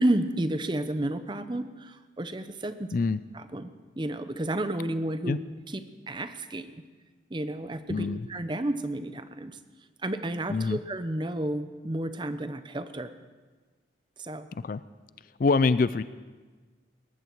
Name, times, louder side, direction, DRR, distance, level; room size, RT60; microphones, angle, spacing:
voice 1, 0.0-3.0 3.3-3.7 4.0-5.4 5.7-6.7 7.3-9.6 10.0-13.1 14.2-14.5, right 1 dB, 25° right, 11 dB, 0.7 m, -31 dB
voice 2, 7.9-8.3 10.5-10.8 14.5-14.8 15.4-16.0, left 4 dB, 45° left, 15 dB, 0.4 m, -25 dB
19.0 x 15.0 x 4.6 m, 1.4 s
head